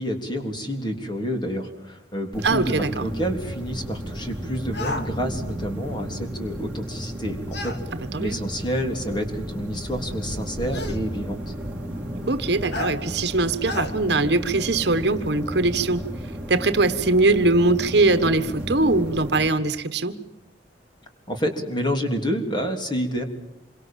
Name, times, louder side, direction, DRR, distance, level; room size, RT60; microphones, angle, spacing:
voice 1, 0.0-11.5 21.3-23.2, equal, 25° left, 4 dB, 3.5 m, -29 dB
sound 1, 2.3-19.5, equal, 5° right, 5.1 m, -33 dB
voice 2, 2.4-3.0 8.1-8.4 12.3-16.0 16.5-20.2, right 2 dB, 60° right, 11 dB, 1.3 m, -21 dB
sound 2, 4.7-5.1 7.5-7.8 9.1-9.2 10.7-11.0 12.7-13.0 13.6-13.9, left 2 dB, 60° left, 2.6 m, -30 dB
27.0 x 24.0 x 7.5 m, 0.89 s
head